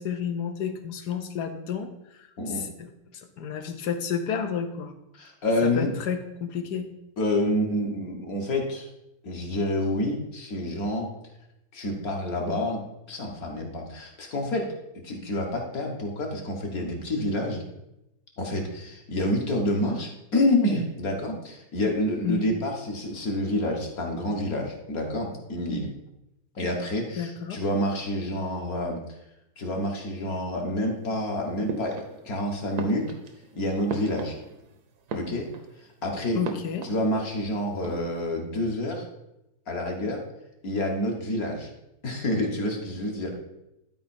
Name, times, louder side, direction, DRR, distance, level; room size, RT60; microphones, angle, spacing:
voice 1, 0.0-4.9 5.6-6.9 22.2-22.4 27.2-27.6 36.3-36.9, left 7 dB, 85° left, 7 dB, 1.5 m, -31 dB
voice 2, 5.1-5.9 7.2-8.9 9.2-11.1 11.7-14.7 15.0-17.6 18.4-25.9 26.6-29.0 29.6-33.1 33.5-34.4 35.1-35.5 36.0-36.4 36.8-39.1 39.7-40.2 40.6-41.7 42.0-43.4, left 1 dB, 65° left, 0 dB, 1.9 m, -28 dB
sound 1, 31.7-32.4 32.7-34.7 35.0-35.8 36.4-37.4 37.7-38.2, right 3 dB, 75° right, 1.4 m, -37 dB
12.0 x 4.6 x 4.3 m, 0.88 s
omnidirectional pair, 1.7 m